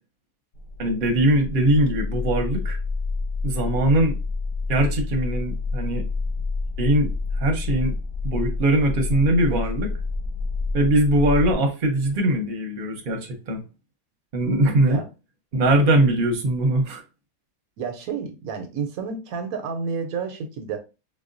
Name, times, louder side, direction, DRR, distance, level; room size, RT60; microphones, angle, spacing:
sound 1, 0.6-11.5, left 3 dB, 75° left, 1.1 m, -28 dB
voice 1, 0.8-2.8 3.4-4.1 4.7-6.0 6.8-7.1 7.4-7.9 8.2-9.9 10.7-13.6 14.3-15.0 15.5-17.0, right 1 dB, 45° right, 0.8 m, -21 dB
voice 2, 17.8-20.8, right 5 dB, 80° right, 1.1 m, -30 dB
4.1 x 2.2 x 2.5 m
omnidirectional pair, 1.5 m